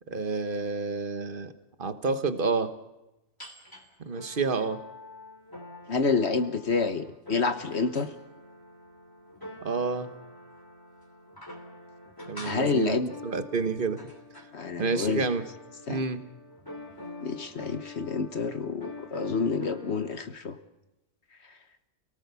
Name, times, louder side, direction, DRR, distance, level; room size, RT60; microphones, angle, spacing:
voice 1, 0.1-1.5 1.8-2.7 4.1-4.8 9.6-10.1 12.3-14.0 14.8-15.4 15.9-16.2, right 4 dB, 40° right, 9 dB, 1.4 m, -29 dB
sound 1, 3.4-3.8 4.2-20.2, left 2 dB, 15° left, 3.1 m, -45 dB
voice 2, 5.9-8.1 12.4-13.1 14.5-15.3 15.9-16.0 17.2-20.5, left 4 dB, 50° left, 9 dB, 1.3 m, -28 dB
29.0 x 18.5 x 7.0 m, 0.97 s
omnidirectional pair, 1.5 m